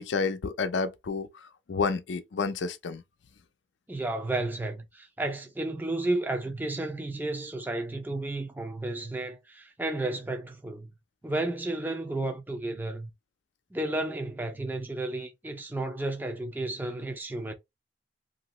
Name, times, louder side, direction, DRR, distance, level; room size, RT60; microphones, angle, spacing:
voice 1, 0.0-3.0, left 4 dB, 75° left, 0.5 m, -30 dB
voice 2, 3.9-10.9 11.2-13.1 13.7-17.5, right 2 dB, 10° right, 0.4 m, -32 dB
2.9 x 2.6 x 3.0 m
head